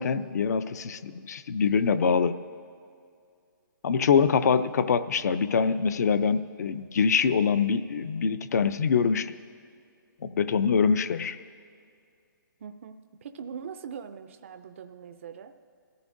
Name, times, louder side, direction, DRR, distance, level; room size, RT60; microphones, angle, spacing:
voice 1, 0.0-2.4 3.8-9.3 10.2-11.4, left 6 dB, 50° left, 14 dB, 0.5 m, -24 dB
voice 2, 12.6-15.5, right 7 dB, 35° right, 9 dB, 0.4 m, -42 dB
22.0 x 14.5 x 2.6 m, 2.3 s
hypercardioid pair, 170°, 11 cm